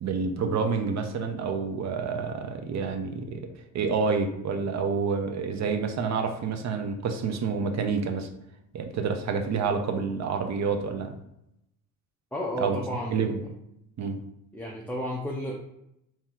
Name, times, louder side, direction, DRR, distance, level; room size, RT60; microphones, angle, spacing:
voice 1, 0.0-8.3 8.7-11.2 12.6-12.8 13.1-13.4 14.0-14.2, right 5 dB, 50° right, 6 dB, 0.7 m, -28 dB
voice 2, 12.3-13.4 14.5-15.5, left 1 dB, 5° left, -4 dB, 0.5 m, -32 dB
3.8 x 3.0 x 4.4 m, 0.80 s
cardioid pair, 135°, 36 cm